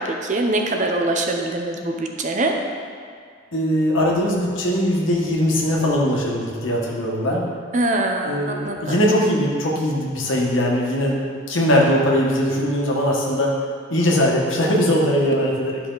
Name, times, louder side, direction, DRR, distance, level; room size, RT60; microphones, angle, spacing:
voice 1, 0.0-2.5 7.7-8.4 8.6-9.0, right 2 dB, 40° right, 2 dB, 0.8 m, -23 dB
voice 2, 3.5-7.5 8.2-11.2 11.5-13.5 13.9-15.8, equal, 90° left, -3 dB, 1.6 m, -20 dB
11.5 x 5.6 x 4.0 m, 2.2 s
head